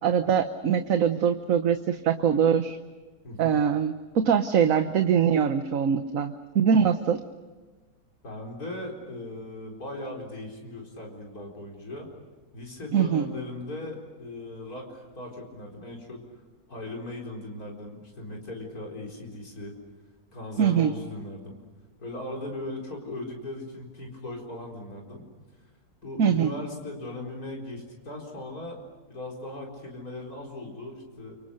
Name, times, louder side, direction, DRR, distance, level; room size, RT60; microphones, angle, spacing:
voice 1, 0.0-2.8 3.4-7.2 12.9-13.3 20.6-20.9 26.2-26.5, right 8 dB, 65° right, 8 dB, 1.3 m, -23 dB
voice 2, 3.2-3.5 8.2-12.1 12.5-16.2 16.7-19.7 20.3-21.6 22.0-25.3 26.0-28.8 29.1-31.4, left 2 dB, 75° left, -1 dB, 5.0 m, -38 dB
29.0 x 25.0 x 6.6 m, 1.3 s
omnidirectional pair, 1.6 m